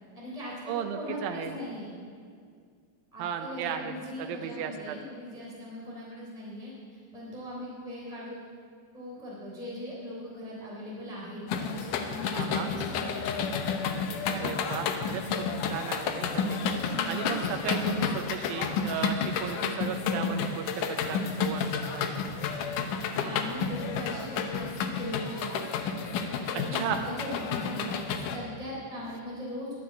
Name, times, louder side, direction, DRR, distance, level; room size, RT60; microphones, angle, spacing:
voice 1, 0.1-1.9 3.1-6.7 7.1-8.4 8.9-13.4 16.8-17.3 23.2-25.5 26.5-29.7, left 1 dB, 10° left, -6 dB, 2.6 m, -39 dB
voice 2, 0.7-1.6 3.2-3.9 4.2-5.0 12.3-12.7 14.3-16.6 17.1-22.0 26.7-27.0, right 8 dB, 80° right, 6 dB, 2.5 m, -35 dB
sound 1, 11.5-28.4, left 5 dB, 70° left, 2.2 m, -31 dB
11.5 x 9.6 x 8.4 m, 2.1 s
omnidirectional pair, 4.3 m